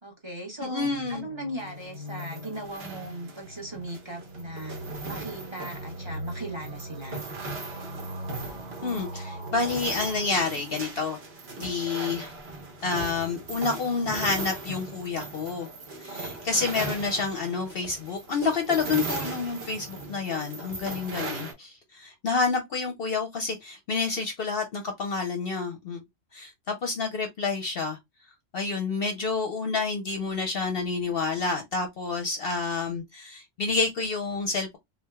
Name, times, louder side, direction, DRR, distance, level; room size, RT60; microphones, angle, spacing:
voice 1, 0.0-4.8 5.0-7.2, right 1 dB, 25° right, 0.9 m, -38 dB
voice 2, 0.6-1.3 8.8-11.2 11.6-12.3 12.8-15.7 16.0-26.0 26.3-28.0 28.5-34.8, left 4 dB, 55° left, 0.7 m, -29 dB
sound 1, 0.8-11.6, right 1 dB, 75° right, 1.7 m, -41 dB
sound 2, 1.6-21.5, right 2 dB, 55° right, 1.3 m, -38 dB
3.6 x 3.2 x 2.2 m
omnidirectional pair, 1.3 m